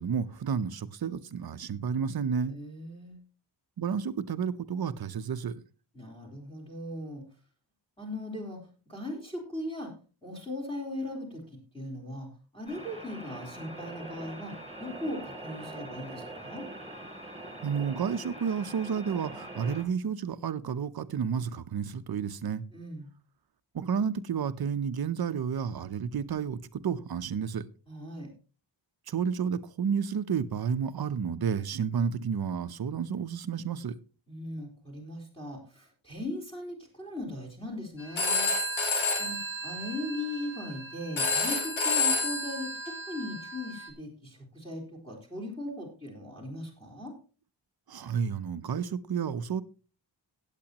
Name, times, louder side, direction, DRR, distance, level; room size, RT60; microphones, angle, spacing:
voice 1, 0.0-2.6 3.8-5.6 17.6-22.6 23.7-27.6 29.1-34.0 47.9-49.6, right 7 dB, 55° right, 0.8 m, -31 dB
voice 2, 2.5-3.2 5.9-7.2 8.0-8.6 8.9-9.9 10.2-16.7 22.7-23.1 27.9-28.3 34.3-38.5 39.2-47.1, left 1 dB, 10° left, 3.9 m, -39 dB
sound 1, 12.7-19.8, right 1 dB, 15° right, 3.1 m, -43 dB
Telephone, 38.0-43.9, left 3 dB, 90° left, 2.8 m, -30 dB
17.5 x 8.4 x 2.9 m
wide cardioid pair, 175°, 45 cm